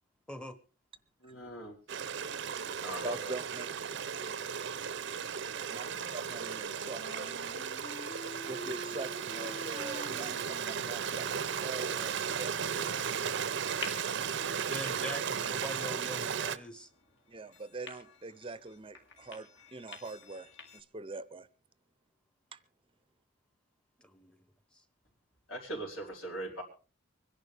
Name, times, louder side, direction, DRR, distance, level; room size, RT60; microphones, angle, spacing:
voice 1, 1.2-1.8 2.8-3.4 25.5-26.6, right 1 dB, 70° left, 4.2 m, -40 dB
Stream, 1.9-16.6, right 7 dB, 60° right, 0.6 m, -35 dB
voice 2, 3.0-3.7 5.7-7.3 8.5-12.8 14.8-15.0 17.3-21.5 22.5-22.6, right 3 dB, 25° right, 0.6 m, -43 dB
Wind instrument woodwind instrument, 5.8-11.7, left 1 dB, 35° left, 1.0 m, -47 dB
sound 1, 8.3-20.8, left 5 dB, 55° left, 2.2 m, -53 dB
voice 3, 14.7-16.9 24.0-24.4, equal, 5° left, 0.9 m, -42 dB
24.5 x 11.0 x 3.4 m
head